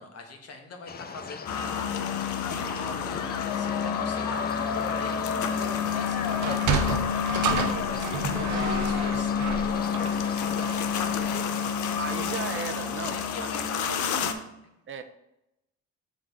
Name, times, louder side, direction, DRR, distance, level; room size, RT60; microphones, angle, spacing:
voice 1, 0.0-12.0 12.3-12.4 13.1-14.4, left 3 dB, 55° left, 3 dB, 1.2 m, -42 dB
sound 1, 0.9-11.7, left 6 dB, 30° left, 0.5 m, -40 dB
sound 2, 1.5-14.3, left 7 dB, 75° left, 0.6 m, -29 dB
voice 2, 2.5-2.9 12.0-13.5 14.9-15.0, right 7 dB, 45° right, 9 dB, 0.4 m, -37 dB
Sliding door, 6.3-10.9, right 5 dB, 70° right, 0.8 m, -30 dB
7.5 x 3.8 x 3.6 m, 0.89 s
cardioid pair, 90°, 30 cm